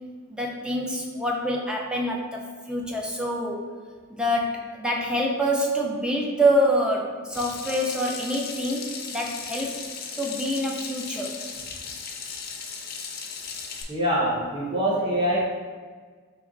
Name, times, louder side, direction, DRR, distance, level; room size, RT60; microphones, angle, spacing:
voice 1, 0.3-3.7 4.1-9.7 10.2-11.3, equal, 5° right, -1 dB, 0.4 m, -26 dB
Water tap faucet / Sink (filling or washing), 7.3-13.8, left 5 dB, 45° left, 0.5 m, -36 dB
voice 2, 13.9-15.4, equal, 20° right, -6 dB, 0.9 m, -24 dB
4.2 x 2.9 x 3.9 m, 1.5 s
head